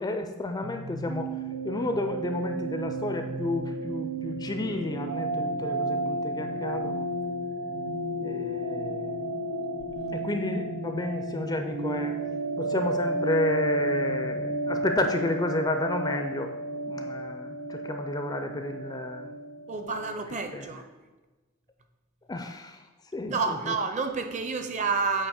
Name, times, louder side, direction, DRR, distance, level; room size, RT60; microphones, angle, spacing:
voice 1, 0.0-1.4 1.6-7.1 8.2-9.4 10.1-12.2 12.6-16.5 16.9-19.3 20.5-20.7 22.3-22.9 23.1-23.7, left 2 dB, 20° left, 6 dB, 0.4 m, -31 dB
sound 1, 0.6-20.1, right 1 dB, 80° right, 0.8 m, -32 dB
voice 2, 19.7-20.8 23.3-25.3, right 4 dB, 35° right, 7 dB, 0.6 m, -29 dB
8.6 x 2.9 x 6.3 m, 1.2 s
head